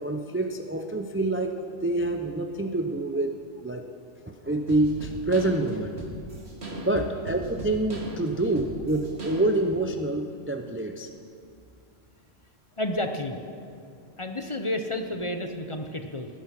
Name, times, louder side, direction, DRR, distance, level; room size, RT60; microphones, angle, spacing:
voice 1, 0.0-3.4 3.6-3.9 4.3-6.0 6.8-11.1, right 2 dB, 20° right, 4 dB, 0.3 m, -27 dB
sound 1, 4.7-9.8, right 1 dB, 55° right, 2.1 m, -38 dB
voice 2, 12.8-13.4 14.2-16.3, left 1 dB, 30° left, 5 dB, 0.7 m, -30 dB
19.0 x 9.7 x 5.9 m, 2.4 s
omnidirectional pair, 1.3 m